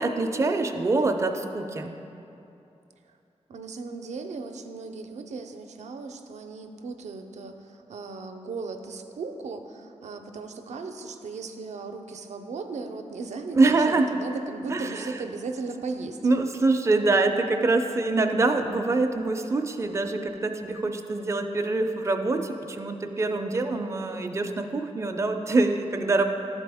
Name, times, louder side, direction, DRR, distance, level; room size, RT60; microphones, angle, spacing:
voice 1, 0.0-1.9 13.5-14.2 14.7-15.1 16.2-26.2, right 3 dB, 25° right, 5 dB, 0.4 m, -25 dB
voice 2, 3.5-16.2, right 4 dB, 85° right, 6 dB, 0.5 m, -37 dB
11.5 x 4.2 x 3.4 m, 2.8 s
wide cardioid pair, 130°, 11 cm